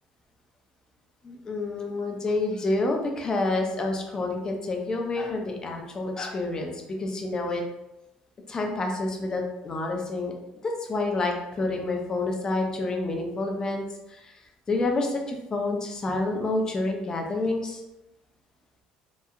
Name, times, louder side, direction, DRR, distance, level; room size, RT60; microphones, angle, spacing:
voice 1, 1.2-7.6 8.5-10.3 10.6-14.4 14.7-17.8, left 2 dB, 25° left, 2 dB, 0.5 m, -28 dB
2.8 x 2.2 x 2.3 m, 0.92 s
cardioid pair, 110°, 3 cm